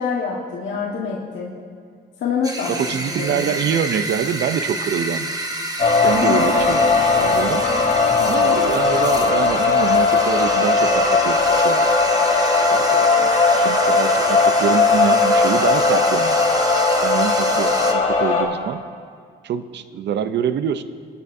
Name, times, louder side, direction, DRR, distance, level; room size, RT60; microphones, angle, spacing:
voice 1, 0.0-1.5 2.2-2.8 3.1-3.5 6.2-6.5 8.2-8.6, left 6 dB, 70° left, -3 dB, 1.5 m, -26 dB
sound 1, 2.4-17.9, right 1 dB, 20° right, 1.2 m, -28 dB
voice 2, 2.7-5.3 6.0-6.9 7.2-7.7 8.2-11.9 12.7-16.4 17.0-18.8 19.4-20.8, right 8 dB, 60° right, 12 dB, 0.6 m, -25 dB
sound 2, 5.8-18.4, left 4 dB, 35° left, 3.0 m, -18 dB
22.0 x 9.8 x 2.7 m, 2.1 s
cardioid pair, 90°, 20 cm